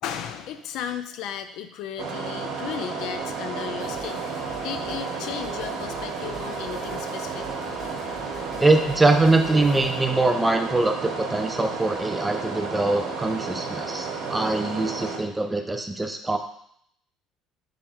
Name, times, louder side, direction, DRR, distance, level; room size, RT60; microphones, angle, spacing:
voice 1, 0.0-7.5, left 9 dB, 70° left, 9 dB, 0.3 m, -35 dB
sound 1, 2.0-15.2, right 4 dB, 75° right, 1.0 m, -32 dB
sound 2, 3.8-10.1, right 1 dB, 20° left, 1.5 m, -46 dB
voice 2, 8.6-16.4, right 2 dB, 10° right, 5 dB, 0.5 m, -23 dB
3.6 x 3.1 x 4.4 m, 0.69 s
cardioid pair, 115°, 0 cm